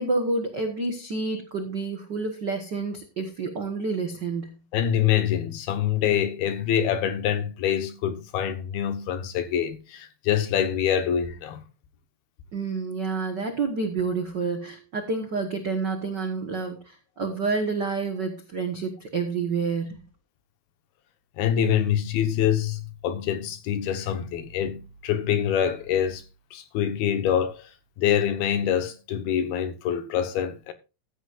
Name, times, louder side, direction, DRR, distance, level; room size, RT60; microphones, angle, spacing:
voice 1, 0.0-4.5 12.5-20.0, right 4 dB, 75° right, 0.9 m, -29 dB
voice 2, 4.7-11.6 21.4-26.2 26.5-27.7 28.0-30.7, left 9 dB, 85° left, 3.2 m, -25 dB
15.0 x 10.0 x 2.5 m
omnidirectional pair, 4.3 m